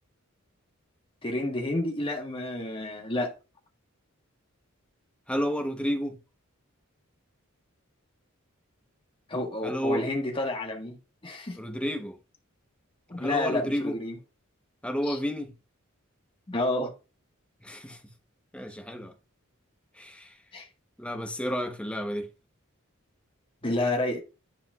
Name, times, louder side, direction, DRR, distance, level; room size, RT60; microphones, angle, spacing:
voice 1, 1.2-3.3 9.3-11.0 11.2-11.6 13.1-14.2 15.0-15.2 16.5-16.9 20.5-20.7 23.6-24.2, left 2 dB, 25° left, 1.4 m, -30 dB
voice 2, 5.3-6.2 9.6-10.0 11.6-12.2 13.2-13.9 14.8-15.5 17.6-18.0 18.5-19.1 20.0-20.3 21.0-22.3, equal, 5° left, 0.9 m, -31 dB
10.5 x 5.0 x 2.3 m
head